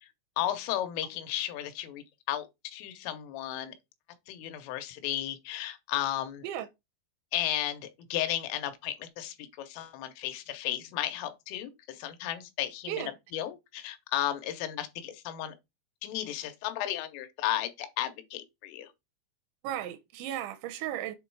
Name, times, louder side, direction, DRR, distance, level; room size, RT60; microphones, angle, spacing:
voice 1, 0.4-3.7 4.3-6.5 7.3-15.5 16.0-18.9, left 12 dB, 85° left, 3.4 m, -34 dB
voice 2, 19.6-21.2, right 12 dB, 85° right, 2.8 m, -35 dB
7.7 x 3.0 x 4.6 m
omnidirectional pair, 5.5 m